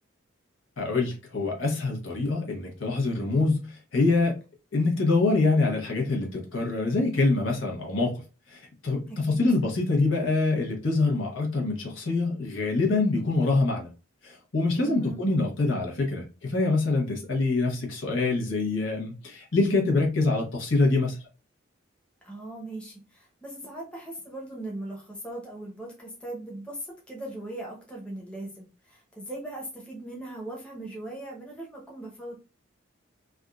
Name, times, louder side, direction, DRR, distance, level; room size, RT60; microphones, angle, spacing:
voice 1, 0.8-4.4 4.7-8.2 8.5-13.9 14.2-21.2, left 3 dB, 80° left, 1.0 m, -25 dB
voice 2, 9.1-9.4 14.7-15.2 22.2-32.4, right 1 dB, 5° left, 0.8 m, -39 dB
3.4 x 2.5 x 2.3 m
head